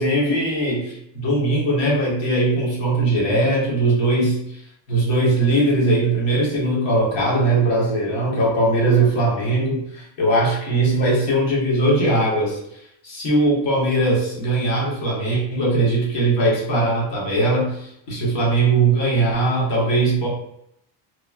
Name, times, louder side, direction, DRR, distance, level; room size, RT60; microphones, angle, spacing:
voice 1, 0.0-4.4 4.9-12.6 13.0-20.3, right 2 dB, 70° left, -4 dB, 1.3 m, -20 dB
3.0 x 2.3 x 2.3 m, 0.76 s
cardioid pair, 130°, 44 cm